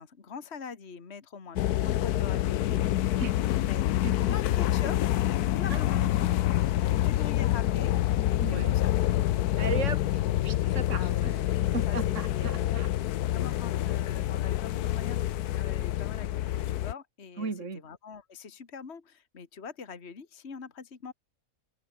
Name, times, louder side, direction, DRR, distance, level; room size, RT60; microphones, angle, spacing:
voice 1, 0.0-2.8 3.6-3.8 4.3-5.0 5.6-6.3 7.0-8.0 8.3-8.9 10.9-12.0 12.3-12.8 13.3-17.5 17.8-21.1, left 5 dB, 45° left, 2.1 m, -43 dB
sound 1, 1.6-16.9, left 13 dB, 80° left, 1.2 m, -27 dB
voice 2, 3.2-3.5 4.0-4.1 5.7-5.8 6.8-7.1 8.4-8.8 9.6-11.4 11.7-12.9 17.4-17.8, right 4 dB, 50° right, 2.7 m, -36 dB
open air
omnidirectional pair, 1.6 m